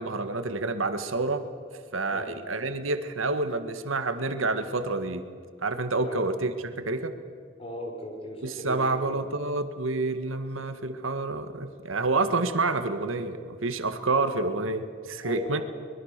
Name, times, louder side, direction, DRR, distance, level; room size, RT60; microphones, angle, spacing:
voice 1, 0.0-1.4 1.9-5.2 5.6-7.1 8.4-15.6, right 3 dB, 80° right, 9 dB, 1.6 m, -28 dB
voice 2, 7.6-9.1 15.2-15.6, equal, 30° left, 2 dB, 4.8 m, -37 dB
24.0 x 22.0 x 6.7 m, 2.2 s
head